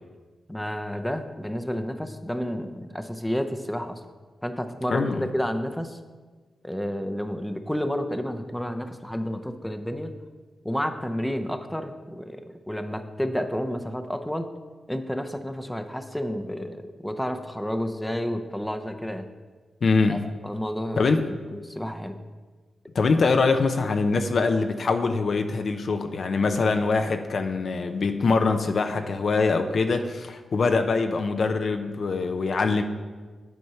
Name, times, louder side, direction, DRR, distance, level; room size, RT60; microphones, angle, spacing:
voice 1, 0.5-4.0 4.4-6.0 6.6-10.1 10.6-14.5 14.9-19.3 20.1-22.2, equal, 5° left, 6 dB, 0.7 m, -30 dB
voice 2, 4.9-5.3 19.8-20.3 21.0-21.2 22.9-32.8, left 4 dB, 65° left, 7 dB, 0.6 m, -23 dB
9.5 x 4.4 x 5.6 m, 1.4 s
cardioid pair, 65°, 0 cm